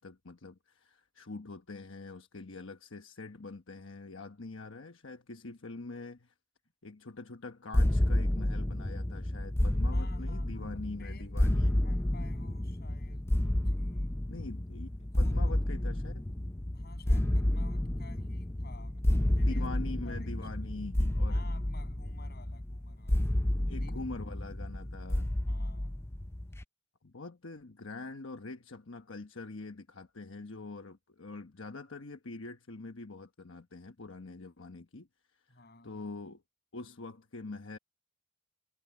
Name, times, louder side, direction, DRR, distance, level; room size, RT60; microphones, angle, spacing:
voice 1, 0.0-6.3 6.8-11.8 14.3-16.3 19.4-21.4 23.7-25.4 27.0-35.6 35.8-36.4 36.7-37.8, left 3 dB, 75° left, 1.2 m, -44 dB
sound 1, 7.7-26.6, left 1 dB, 15° left, 0.5 m, -30 dB
voice 2, 9.9-13.3 13.7-14.2 15.1-15.6 16.7-19.7 20.1-20.5 21.3-23.4 23.7-23.9 25.5-26.0 35.5-36.1, left 3 dB, 55° left, 7.9 m, -55 dB
head